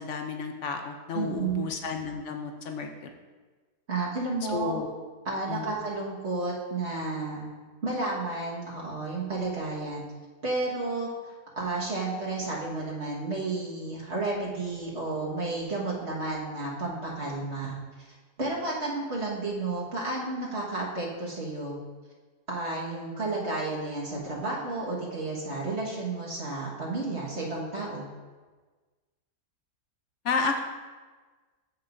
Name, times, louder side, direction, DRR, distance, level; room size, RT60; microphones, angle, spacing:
voice 1, 0.0-3.1 4.5-4.9 5.5-5.7 30.2-30.6, left 5 dB, 60° left, 4 dB, 0.8 m, -32 dB
voice 2, 1.1-1.6 3.9-4.7 5.2-7.5 7.8-10.0 10.4-11.1 11.5-17.7 18.4-21.8 22.5-28.1, right 3 dB, 45° right, -4 dB, 1.7 m, -32 dB
13.5 x 5.5 x 2.6 m, 1.4 s
omnidirectional pair, 1.7 m